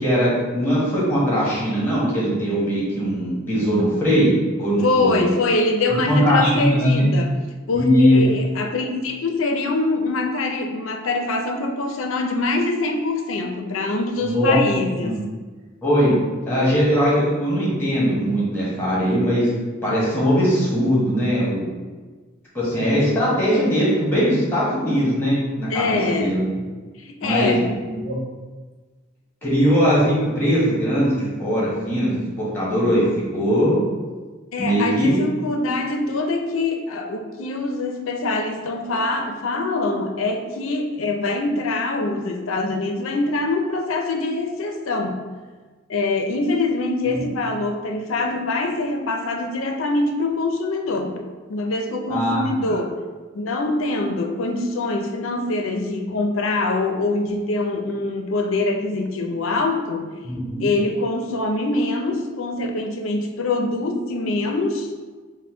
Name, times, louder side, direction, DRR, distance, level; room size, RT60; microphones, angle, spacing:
voice 1, 0.0-4.3 4.6-5.2 6.0-7.1 7.7-8.2 14.2-14.6 15.0-15.2 15.8-16.1 16.5-19.5 19.8-21.7 22.5-26.5 27.2-27.6 27.8-28.2 29.4-33.0 33.3-33.8 34.6-35.2 47.1-47.2 52.1-52.7 60.2-60.6, equal, 10° left, -7 dB, 1.3 m, -20 dB
voice 2, 4.8-7.3 7.7-15.2 25.7-26.4 27.0-27.7 34.5-45.3 45.9-51.2 51.5-52.9 53.3-60.1 60.6-64.9, left 2 dB, 85° left, 4 dB, 0.5 m, -24 dB
4.2 x 2.2 x 4.3 m, 1.4 s
head